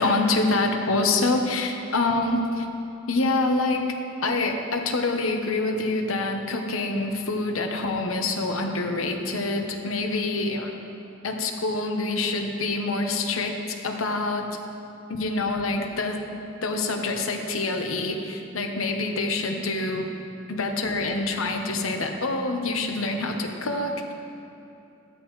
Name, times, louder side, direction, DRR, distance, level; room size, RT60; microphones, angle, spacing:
voice 1, 0.0-2.7 3.1-3.9 4.2-10.7 11.2-14.6 15.1-16.2 16.6-20.1 20.5-24.1, left 2 dB, 90° left, 3 dB, 1.1 m, -26 dB
16.5 x 12.5 x 3.3 m, 2.8 s
head